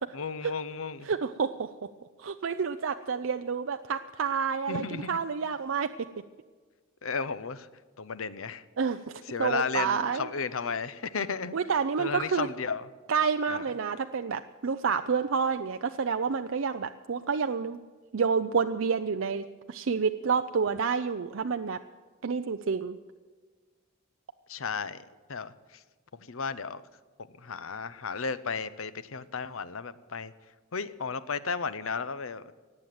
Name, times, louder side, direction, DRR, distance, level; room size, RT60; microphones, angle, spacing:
voice 1, 0.1-1.1 4.7-5.2 7.0-7.7 8.0-8.6 9.3-11.6 12.0-12.9 13.5-13.7 24.5-25.0 25.3-25.8 26.3-26.8 27.4-30.3 30.7-32.5, left 5 dB, 90° left, 14 dB, 0.8 m, -34 dB
voice 2, 1.1-1.9 2.2-5.9 8.8-10.3 11.5-12.5 13.1-17.8 18.1-21.8 22.2-23.0, right 5 dB, 70° right, 8 dB, 0.5 m, -29 dB
18.5 x 7.8 x 9.2 m, 1.4 s
head